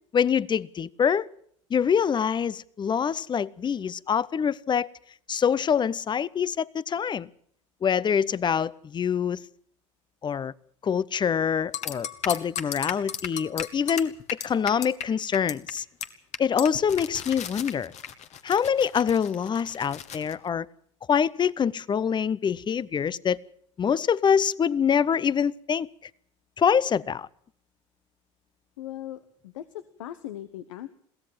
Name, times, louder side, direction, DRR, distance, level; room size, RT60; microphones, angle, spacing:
voice 1, 0.1-1.3 1.7-4.9 5.3-7.3 7.8-9.4 10.2-10.5 10.8-14.1 14.4-15.8 16.4-17.9 18.4-20.7 21.1-23.4 23.8-25.9 26.6-27.3, left 7 dB, 30° left, 0.8 m, -25 dB
sound 1, 11.7-15.0 15.3-15.7 16.0-16.1 16.3-20.3, left 9 dB, 45° left, 1.7 m, -35 dB
voice 2, 28.8-30.9, left 12 dB, 75° left, 1.1 m, -39 dB
22.0 x 16.5 x 7.4 m
hypercardioid pair, 70°, 16 cm